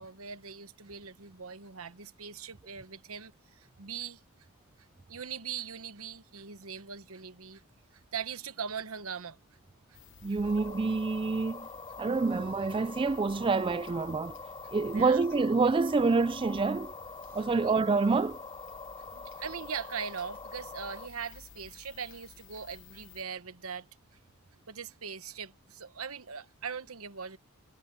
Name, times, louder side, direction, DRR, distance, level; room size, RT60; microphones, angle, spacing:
voice 1, 0.0-4.2 5.1-7.6 8.1-9.4 9.9-10.0 14.8-15.2 19.1-23.9 24.7-27.4, right 6 dB, 75° right, 1.2 m, -40 dB
sound 1, 9.9-23.2, left 7 dB, 55° left, 0.9 m, -54 dB
voice 2, 10.2-11.7 12.0-14.4 14.7-16.9 17.3-18.4, right 4 dB, 25° right, 0.3 m, -27 dB
sound 2, 10.4-21.1, left 3 dB, 25° left, 3.1 m, -45 dB
head